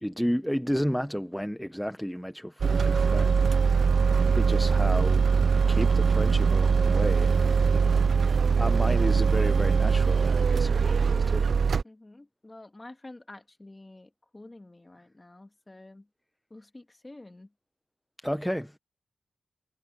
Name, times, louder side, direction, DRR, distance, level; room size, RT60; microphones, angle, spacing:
voice 1, 0.0-4.0 4.4-5.2 5.5-7.9 8.6-11.5 18.2-18.8, equal, ahead, 0.8 m, -32 dB
sound 1, 2.6-11.8, right 5 dB, 60° right, 0.4 m, -22 dB
sound 2, 3.9-9.1, right 6 dB, 80° right, 2.1 m, -48 dB
voice 2, 6.7-7.8 11.8-16.1 16.5-17.5, left 2 dB, 20° left, 2.0 m, -48 dB
wide cardioid pair, 105°, 0 cm